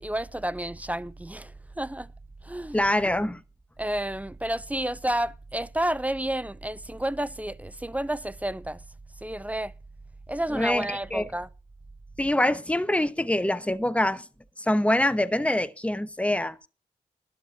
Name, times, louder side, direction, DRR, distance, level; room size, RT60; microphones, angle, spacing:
voice 1, 0.0-2.1 2.4-2.8 3.8-8.8 9.2-9.7 10.3-11.5, right 1 dB, 10° right, 0.5 m, -30 dB
voice 2, 2.7-3.4 10.5-11.3 12.2-14.3 14.6-16.7, left 1 dB, 10° left, 0.9 m, -25 dB
12.0 x 7.0 x 6.0 m
cardioid pair, 50°, 16 cm